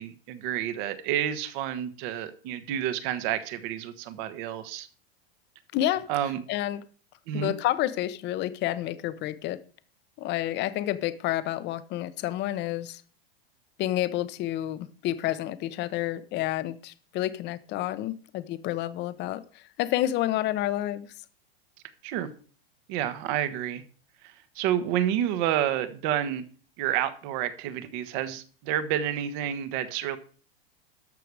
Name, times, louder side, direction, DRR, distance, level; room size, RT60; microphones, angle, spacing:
voice 1, 0.0-4.9 6.1-6.4 7.3-7.5 22.0-22.3 22.9-23.8 24.2-26.4 26.8-30.2, right 11 dB, 50° right, 12 dB, 1.4 m, -29 dB
voice 2, 5.7-6.1 6.5-6.8 7.3-9.6 10.2-13.0 13.8-21.1, left 14 dB, 35° left, 14 dB, 0.9 m, -29 dB
12.5 x 6.8 x 4.8 m, 0.41 s
supercardioid pair, 130°, 31 cm